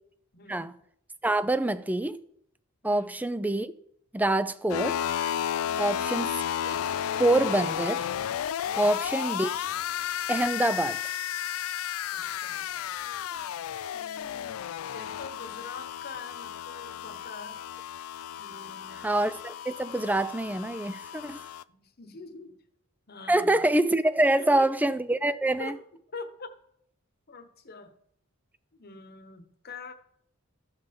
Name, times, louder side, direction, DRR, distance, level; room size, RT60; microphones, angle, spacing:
voice 1, 0.3-0.7 2.8-3.2 8.6-8.9 12.1-12.7 13.9-17.7 18.4-19.0 21.7-22.6 23.1-23.6 24.3-24.7 25.6-25.8 26.1-26.5 27.3-27.9 28.7-29.9, left 3 dB, 50° left, 1.1 m, -45 dB
voice 2, 1.2-2.2 2.8-3.7 4.1-5.0 5.8-6.3 6.6-6.7 7.2-8.1 8.8-9.5 10.3-11.0 19.0-21.4 23.3-25.7, right 1 dB, 10° right, 0.4 m, -25 dB
sound 1, 4.7-21.6, left 10 dB, 85° left, 0.3 m, -33 dB
13.5 x 5.7 x 5.2 m
head